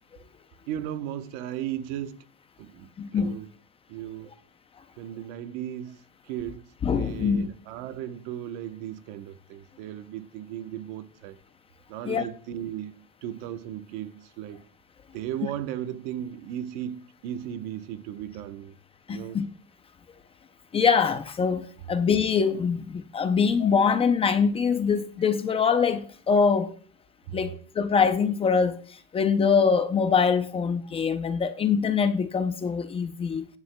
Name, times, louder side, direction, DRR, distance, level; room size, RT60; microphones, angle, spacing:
voice 1, 0.7-2.2 2.6-3.5 3.9-4.3 5.0-11.4 11.9-14.6 15.1-18.8 19.1-19.4 27.3-27.4, right 11 dB, 70° right, 1.0 m, -36 dB
voice 2, 3.0-3.4 6.8-7.5 12.0-12.3 19.1-19.5 20.7-26.7 27.3-33.5, left 6 dB, 20° left, 0.5 m, -24 dB
15.0 x 9.6 x 2.2 m
cardioid pair, 160°, 31 cm